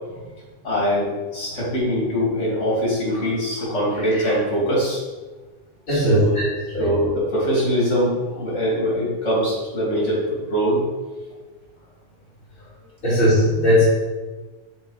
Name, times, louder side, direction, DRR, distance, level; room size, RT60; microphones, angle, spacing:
voice 1, 0.6-5.0 5.9-6.4 6.8-10.2 10.5-10.8, equal, 70° left, -5 dB, 2.8 m, -22 dB
voice 2, 5.9-6.4 6.7-6.9 13.0-13.8, equal, 45° left, -11 dB, 2.4 m, -18 dB
6.6 x 3.8 x 4.8 m, 1.2 s
omnidirectional pair, 1.3 m